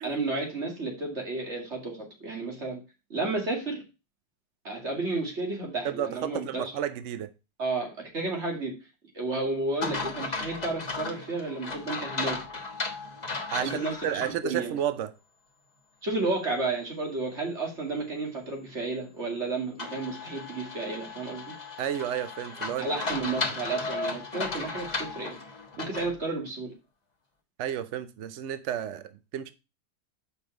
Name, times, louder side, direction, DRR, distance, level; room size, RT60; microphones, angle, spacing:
voice 1, 0.0-2.8 3.1-3.8 4.6-6.7 7.6-8.7 9.1-12.4 13.6-14.7 16.0-21.4 22.8-25.4 25.8-26.7, right 3 dB, 35° right, 2.6 m, -32 dB
voice 2, 5.8-7.3 13.5-13.8 14.0-15.1 21.8-23.0 27.6-29.5, right 10 dB, 80° right, 0.6 m, -32 dB
sound 1, 9.8-14.3 14.8-14.9 19.8-26.1, left 3 dB, 25° left, 1.2 m, -35 dB
7.2 x 5.5 x 4.6 m
omnidirectional pair, 2.0 m